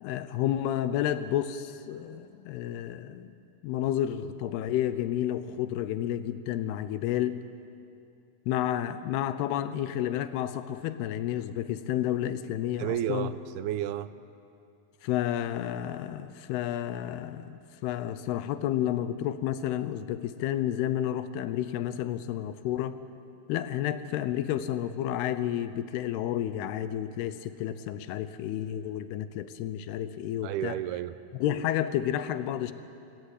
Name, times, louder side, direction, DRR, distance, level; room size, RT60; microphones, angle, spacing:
voice 1, 0.0-3.3 3.6-7.4 8.5-13.3 15.0-23.0 23.5-30.8 31.4-32.7, left 11 dB, 85° left, 12 dB, 2.8 m, -31 dB
voice 2, 12.8-14.1 30.4-31.2, right 12 dB, 85° right, 14 dB, 2.6 m, -31 dB
28.5 x 16.0 x 8.4 m, 2.6 s
omnidirectional pair, 4.5 m